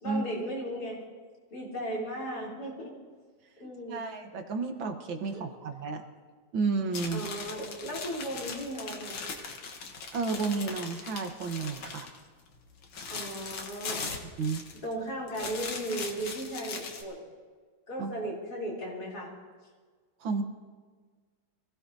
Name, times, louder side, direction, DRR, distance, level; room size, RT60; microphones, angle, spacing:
voice 1, 0.0-1.0 1.5-3.0 3.6-4.0 5.3-5.5 7.1-9.4 13.1-14.1 14.8-17.3 17.9-19.3, right 1 dB, 55° left, -5 dB, 4.0 m, -36 dB
voice 2, 3.9-6.0 6.5-7.2 10.1-12.1 14.4-14.6 18.0-18.1 20.2-20.4, right 4 dB, 80° right, 5 dB, 2.0 m, -31 dB
sound 1, 6.9-12.2 12.5-14.9 15.3-17.0, left 4 dB, 85° left, 2.2 m, -40 dB
25.0 x 16.5 x 2.8 m, 1.5 s
omnidirectional pair, 2.1 m